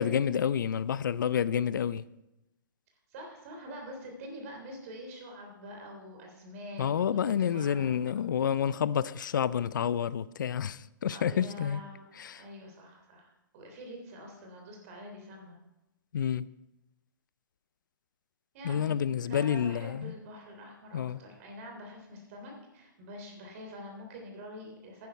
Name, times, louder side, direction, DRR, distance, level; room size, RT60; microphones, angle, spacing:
voice 1, 0.0-2.0 6.8-11.8 12.2-12.4 16.1-16.5 18.6-20.1 20.9-21.2, left 8 dB, 70° left, 0.5 m, -29 dB
voice 2, 3.1-8.0 11.1-12.1 12.4-15.6 18.5-18.9 19.2-25.1, equal, 45° right, 3.3 m, -46 dB
10.5 x 10.5 x 4.6 m
hypercardioid pair, 130°, 11 cm